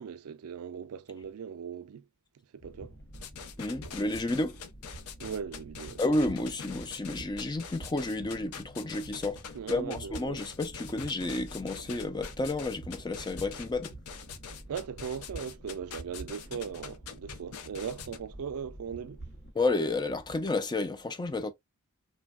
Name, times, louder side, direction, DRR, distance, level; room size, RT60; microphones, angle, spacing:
voice 1, 0.0-2.1 2.5-2.9 5.2-6.0 9.5-10.4 14.7-19.2, right 7 dB, 75° right, 0.4 m, -39 dB
sound 1, 2.6-19.5, right 2 dB, 50° left, 0.8 m, -48 dB
sound 2, 3.1-18.2, left 7 dB, 85° left, 0.5 m, -44 dB
voice 2, 3.6-4.6 6.0-14.0 19.5-21.5, left 2 dB, 20° left, 0.4 m, -31 dB
3.3 x 2.2 x 2.3 m
head